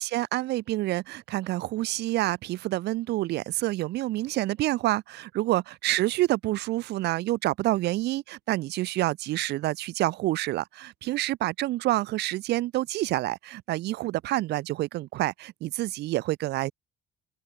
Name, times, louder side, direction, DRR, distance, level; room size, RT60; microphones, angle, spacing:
voice 1, 0.0-16.7, right 16 dB, 80° right, 3.5 m, -28 dB
open air
cardioid pair, 110°, 17 cm